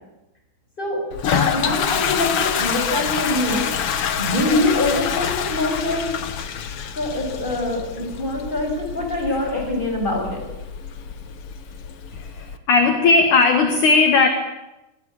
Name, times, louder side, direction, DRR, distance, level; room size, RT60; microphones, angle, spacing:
Toilet flush, 1.1-12.6, left 8 dB, 80° left, 1.3 m, -27 dB
voice 1, 1.3-3.7 4.2-6.1 7.0-10.4, left 1 dB, 10° left, 2 dB, 7.0 m, -24 dB
voice 2, 12.1-14.3, left 4 dB, 55° left, 6 dB, 2.9 m, -17 dB
24.5 x 23.0 x 8.6 m, 1.0 s
omnidirectional pair, 4.7 m